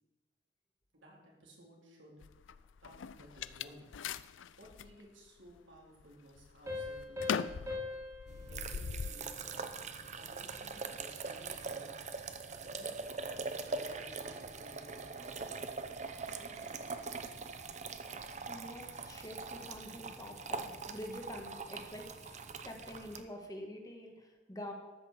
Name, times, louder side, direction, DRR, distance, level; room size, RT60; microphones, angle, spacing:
voice 1, 0.9-2.2 2.8-3.9 4.6-7.9 8.5-9.6 10.2-12.0 12.5-13.1 13.3-15.5 16.2-17.9, equal, 80° right, -2 dB, 3.7 m, -57 dB
sound 1, 2.2-4.9 5.5-6.0 6.4-9.1, left 7 dB, 85° left, 0.4 m, -40 dB
Piano, 6.7-10.0, left 3 dB, 15° right, 2.6 m, -43 dB
sound 2, 8.3-23.2, right 4 dB, 40° right, 0.7 m, -42 dB
voice 2, 18.5-24.7, left 1 dB, 20° left, 2 dB, 1.6 m, -47 dB
13.5 x 6.6 x 7.5 m, 1.2 s
head